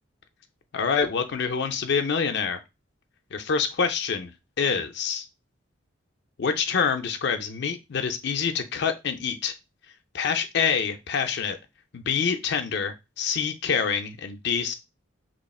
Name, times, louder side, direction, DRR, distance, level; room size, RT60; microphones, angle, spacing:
voice 1, 0.7-2.6 3.3-4.3 4.6-5.3 6.4-9.5 10.1-11.6 11.9-14.7, left 6 dB, 60° left, 6 dB, 0.5 m, -26 dB
3.0 x 2.4 x 4.1 m, 0.24 s
head